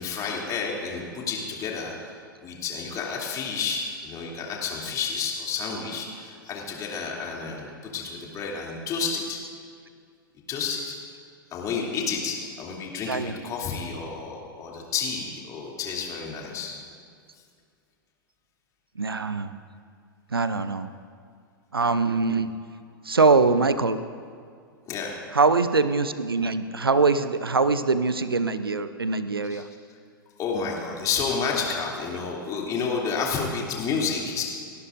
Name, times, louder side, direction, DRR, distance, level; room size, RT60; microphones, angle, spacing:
voice 1, 0.0-2.1 2.4-9.4 10.5-11.0 11.5-16.7 24.9-25.2 29.4-29.6 30.4-34.4, left 5 dB, 30° left, -2 dB, 2.8 m, -30 dB
voice 2, 19.0-19.5 20.3-20.9 21.7-22.5 23.1-24.0 25.3-29.7, right 4 dB, 85° right, 12 dB, 0.6 m, -23 dB
29.5 x 11.5 x 2.6 m, 2.2 s
figure-of-eight pair, 100°, 12 cm